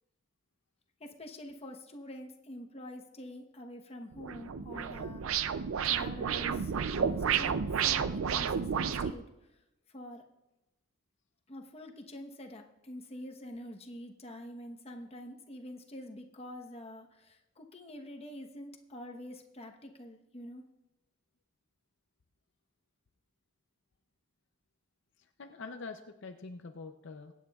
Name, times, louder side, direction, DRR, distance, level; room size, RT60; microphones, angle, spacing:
voice 1, 1.0-5.3 5.8-9.6 9.9-10.2 11.5-20.6, left 1 dB, 30° left, 3 dB, 1.0 m, -46 dB
sound 1, 4.1-9.1, right 7 dB, 80° right, 0.5 m, -31 dB
voice 2, 25.2-27.3, left 4 dB, 60° left, 5 dB, 0.6 m, -45 dB
23.0 x 9.2 x 2.4 m, 0.94 s
head